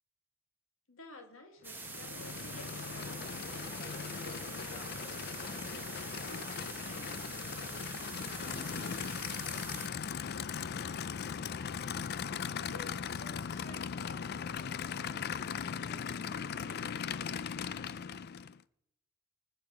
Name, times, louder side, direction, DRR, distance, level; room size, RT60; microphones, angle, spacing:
voice 1, 0.9-5.3 5.7-11.7 12.4-15.4 15.7-17.6, left 2 dB, 80° left, 4 dB, 2.0 m, -55 dB
sound 1, 1.6-9.9, right 4 dB, 10° right, 1.3 m, -45 dB
Aircraft / Idling, 1.7-18.6, left 7 dB, 50° left, 0.4 m, -39 dB
sound 2, 3.0-8.9, left 1 dB, 20° left, 1.0 m, -55 dB
20.0 x 8.7 x 4.9 m, 0.82 s
head